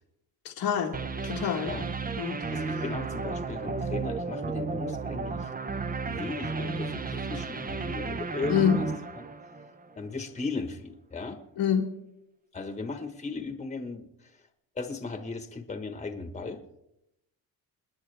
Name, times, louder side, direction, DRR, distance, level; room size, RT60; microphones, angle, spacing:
voice 1, 0.4-1.0 1.2-1.7 2.2-2.4 8.5-8.8 11.6-11.9, left 8 dB, 85° left, -2 dB, 1.6 m, -26 dB
sound 1, 0.9-10.0, right 4 dB, 25° right, 0.7 m, -33 dB
voice 2, 2.5-5.5 6.1-8.9 10.0-11.4 12.5-14.1 14.7-16.6, left 3 dB, 20° left, 7 dB, 1.2 m, -37 dB
28.5 x 9.9 x 3.4 m, 0.85 s
cardioid pair, 130°, 38 cm